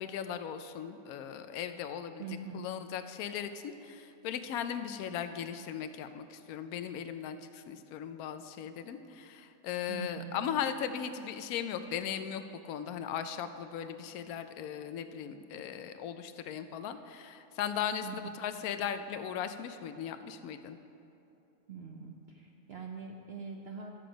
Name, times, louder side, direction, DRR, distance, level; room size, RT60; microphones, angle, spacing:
voice 1, 0.0-2.2 2.5-20.8, left 8 dB, 85° left, 9 dB, 1.1 m, -38 dB
voice 2, 2.2-2.7 9.9-10.4 18.0-18.3 21.7-23.9, right 5 dB, 55° right, 1 dB, 0.7 m, -43 dB
12.0 x 7.7 x 5.0 m, 2.8 s
omnidirectional pair, 1.5 m